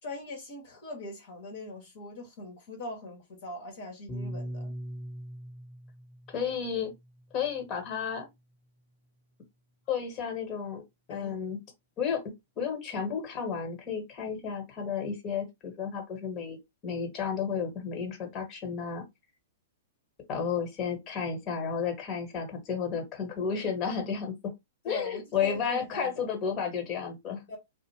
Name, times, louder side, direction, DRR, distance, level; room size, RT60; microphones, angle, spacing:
voice 1, 0.0-4.7 11.1-11.4 24.8-26.3 27.5-27.6, left 2 dB, 60° left, 1.0 m, -41 dB
Piano, 4.1-8.5, equal, 10° left, 1.0 m, -42 dB
voice 2, 6.3-6.9 7.3-8.3 9.9-10.8 11.1-11.6 12.0-19.0 20.3-24.5 24.8-27.4, left 6 dB, 35° left, 1.3 m, -32 dB
2.5 x 2.1 x 3.2 m
hypercardioid pair, 120°, 0 cm